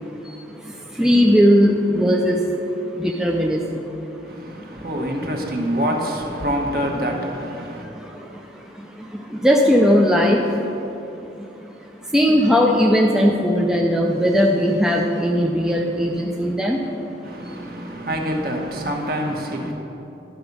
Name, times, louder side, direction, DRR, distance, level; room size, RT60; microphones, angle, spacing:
voice 1, 0.2-2.6 2.9-3.8 7.8-10.6 11.4-11.5 12.0-17.0 17.5-17.6, equal, 5° right, 0.4 m, -19 dB
voice 2, 4.2-7.9 17.2-19.7, equal, 55° right, 1.2 m, -26 dB
11.5 x 5.9 x 5.3 m
head